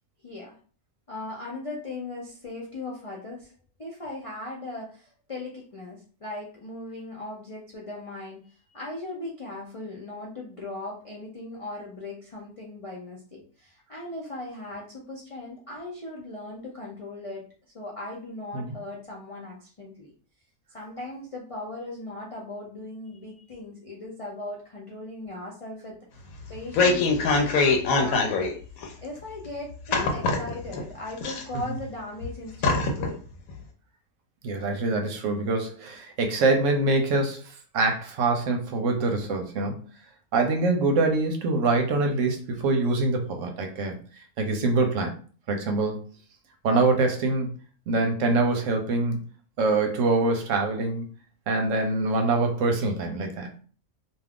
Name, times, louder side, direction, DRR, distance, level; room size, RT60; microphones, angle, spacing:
voice 1, 0.2-0.6 1.1-3.5 3.8-17.4 17.7-20.1 20.7-26.0 26.5-28.5 29.0-33.2, left 2 dB, 50° left, -3 dB, 0.4 m, -38 dB
sound 1, 26.4-28.5 28.8-28.9 29.9-30.8 31.2-31.9 32.2-32.3 32.6-33.1 33.5-33.6, left 3 dB, 85° left, 1.1 m, -23 dB
voice 2, 34.4-37.4 37.7-39.8 40.3-44.0 44.4-45.1 45.5-46.0 46.6-47.5 47.9-49.2 49.6-51.0 51.5-53.5, right 3 dB, 70° right, 4 dB, 0.9 m, -24 dB
2.5 x 2.3 x 3.4 m, 0.41 s
omnidirectional pair, 1.4 m